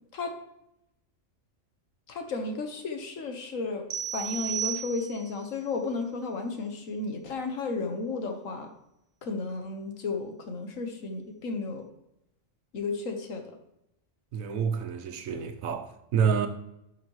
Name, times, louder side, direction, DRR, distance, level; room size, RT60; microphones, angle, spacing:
voice 1, 2.1-3.8 4.1-8.7 9.2-11.8 12.7-13.6, left 3 dB, 75° left, 1.6 m, -33 dB
sound 1, 3.9-5.4, right 8 dB, 65° right, 1.3 m, -34 dB
voice 2, 14.3-16.5, right 6 dB, 90° right, 1.2 m, -28 dB
11.0 x 5.9 x 3.1 m
omnidirectional pair, 1.4 m